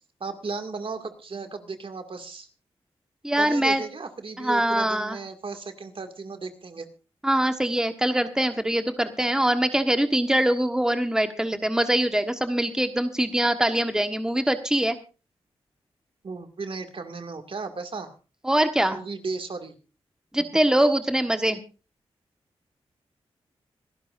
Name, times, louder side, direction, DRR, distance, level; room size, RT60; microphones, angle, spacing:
voice 1, 0.2-2.5 3.3-6.9 16.2-18.1 18.9-19.7, right 4 dB, 55° right, 7 dB, 2.2 m, -35 dB
voice 2, 3.2-3.8 4.4-5.2 7.2-15.0 18.4-19.0 20.3-21.6, right 1 dB, 5° right, 8 dB, 1.3 m, -23 dB
26.0 x 12.5 x 2.6 m, 0.33 s
cardioid pair, 50°, 11 cm